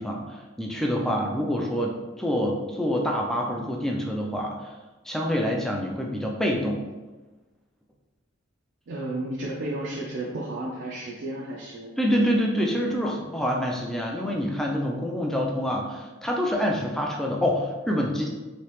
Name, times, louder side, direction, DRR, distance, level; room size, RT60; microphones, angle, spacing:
voice 1, 0.0-4.5 5.1-6.8 12.0-18.3, equal, ahead, -1 dB, 0.4 m, -26 dB
voice 2, 8.9-11.9, right 1 dB, 60° right, -4 dB, 0.5 m, -33 dB
3.1 x 2.8 x 3.1 m, 1.2 s
head